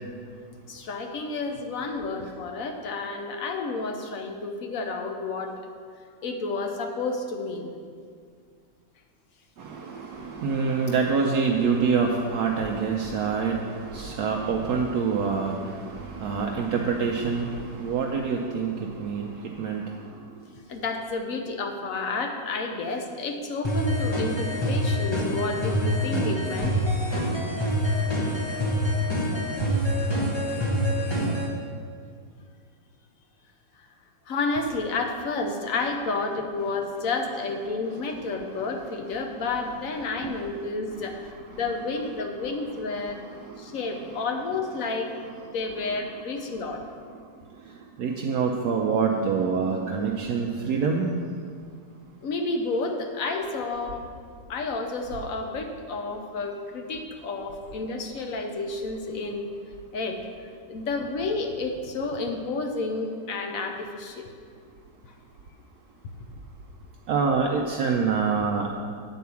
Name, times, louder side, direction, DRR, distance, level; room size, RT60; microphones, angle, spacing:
voice 1, 0.7-5.5 6.2-7.7 20.7-26.7 34.3-41.3 41.6-43.2 43.6-45.1 45.5-46.8 52.2-54.1 54.5-59.5 59.9-60.2 60.7-64.2, left 3 dB, 60° left, 4 dB, 1.0 m, -30 dB
voice 2, 9.6-20.0 40.2-40.4 43.4-43.5 48.0-51.1 67.1-68.7, right 5 dB, 70° right, 1 dB, 1.1 m, -26 dB
sound 1, 23.6-31.5, equal, 20° left, 0.8 m, -26 dB
9.3 x 4.6 x 7.0 m, 2.1 s
omnidirectional pair, 1.9 m